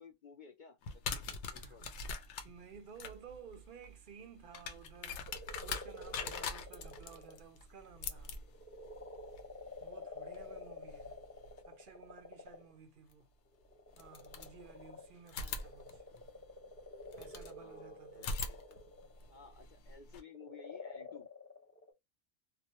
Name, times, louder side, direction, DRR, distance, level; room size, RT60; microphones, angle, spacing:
voice 1, 0.0-1.9 17.5-18.9 19.3-21.3, left 6 dB, 60° left, 0.5 m, -56 dB
sound 1, 0.8-11.6 13.1-13.2 13.9-14.9 15.3-17.6 18.1-20.2, left 4 dB, 80° left, 0.9 m, -44 dB
voice 2, 1.4-8.4 9.8-11.2 11.7-13.3 14.0-16.0 17.2-18.4, right 6 dB, 60° right, 0.6 m, -55 dB
sound 2, 5.3-7.4 7.9-12.8 13.6-19.7 20.3-21.9, left 2 dB, 15° left, 0.5 m, -50 dB
2.3 x 2.1 x 2.8 m
omnidirectional pair, 1.2 m